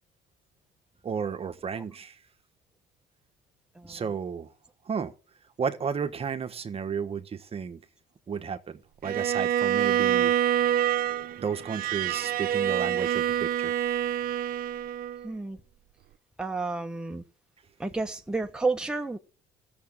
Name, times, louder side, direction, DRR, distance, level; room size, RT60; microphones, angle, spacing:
voice 1, 1.0-2.2 3.9-4.5 4.8-5.1 5.6-7.8 8.3-10.7 11.4-13.7, right 6 dB, 35° right, 1.2 m, -33 dB
Bowed string instrument, 9.0-15.3, right 11 dB, 60° right, 0.8 m, -26 dB
voice 2, 15.2-15.6 16.4-17.2 17.8-19.2, right 3 dB, 5° right, 1.2 m, -31 dB
14.0 x 7.1 x 9.0 m
cardioid pair, 110°, 17 cm